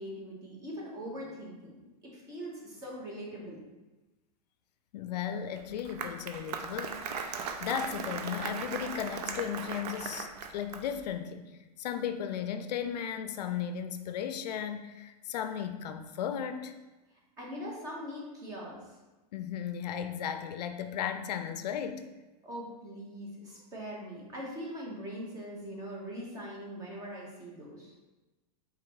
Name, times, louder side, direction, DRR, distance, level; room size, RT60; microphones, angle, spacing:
voice 1, 0.0-3.6 17.4-18.8 22.4-27.9, equal, 15° right, -3 dB, 1.0 m, -42 dB
voice 2, 4.9-16.7 19.3-22.1, left 8 dB, 85° left, 9 dB, 0.4 m, -36 dB
Applause, 5.6-11.0, right 6 dB, 70° right, 0.5 m, -38 dB
4.3 x 3.0 x 3.8 m, 1.1 s
supercardioid pair, 160°, 20 cm